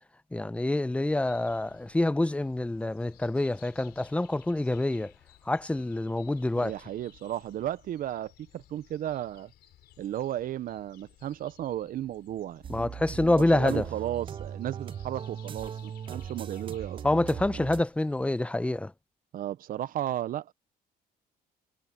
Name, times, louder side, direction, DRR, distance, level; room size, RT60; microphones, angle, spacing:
voice 1, 0.3-5.1 5.5-6.7 12.7-13.9 17.0-18.9, left 2 dB, 5° left, 0.7 m, -27 dB
sound 1, 1.1-18.4, left 13 dB, 70° left, 4.2 m, -58 dB
voice 2, 6.6-9.5 10.0-12.8 13.4-17.0 19.3-20.5, right 12 dB, 55° right, 0.8 m, -34 dB
sound 2, 12.6-17.8, right 8 dB, 30° right, 0.4 m, -39 dB
cardioid pair, 110°, 17 cm